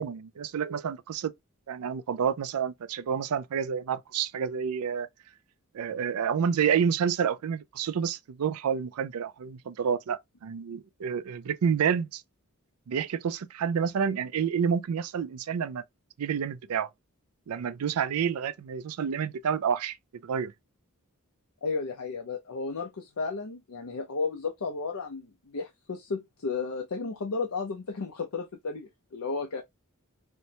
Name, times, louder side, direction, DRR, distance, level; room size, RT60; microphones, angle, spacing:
voice 1, 0.0-1.3 1.7-5.1 5.7-12.2 12.9-15.8 16.2-16.9 17.5-20.0 20.2-20.5, right 7 dB, 80° right, 0.4 m, -29 dB
voice 2, 21.6-29.6, left 4 dB, 70° left, 0.6 m, -33 dB
4.3 x 2.1 x 2.7 m
head